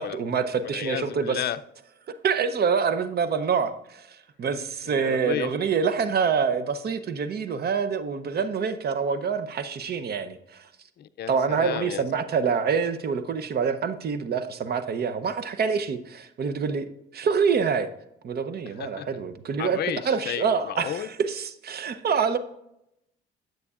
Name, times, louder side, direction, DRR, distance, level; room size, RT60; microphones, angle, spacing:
voice 1, 0.0-1.4 2.2-4.1 4.4-10.7 11.3-17.9 18.2-19.8 20.0-22.4, right 6 dB, 55° right, 0.7 m, -26 dB
voice 2, 0.6-1.6 4.9-5.5 8.4-8.5 11.0-12.0 18.7-19.2 19.6-21.1, left 10 dB, 55° left, 0.5 m, -32 dB
9.6 x 7.7 x 2.4 m
cardioid pair, 90°, 20 cm